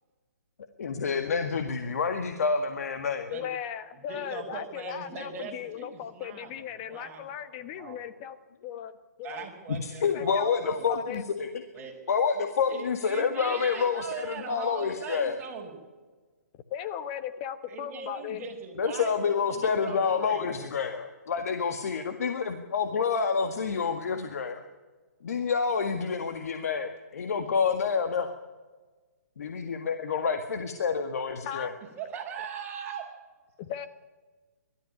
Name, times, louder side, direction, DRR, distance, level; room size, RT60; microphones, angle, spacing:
voice 1, 0.8-3.3 9.7-11.5 12.1-15.4 18.8-24.6 25.2-28.4 29.4-31.7, left 5 dB, 65° left, 7 dB, 1.9 m, -28 dB
voice 2, 3.3-8.4 8.6-8.9 9.2-9.5 10.1-11.2 16.7-18.5 25.3-25.4 31.5-31.7 33.6-33.9, left 9 dB, 30° left, 10 dB, 1.1 m, -37 dB
voice 3, 3.9-8.0 9.2-10.4 10.7-10.9 11.7-11.9 12.7-15.8 17.7-19.2 19.5-20.5 32.0-33.1, right 6 dB, 20° right, -1 dB, 5.7 m, -40 dB
22.5 x 13.5 x 9.7 m, 1.3 s
hypercardioid pair, 150°, 9 cm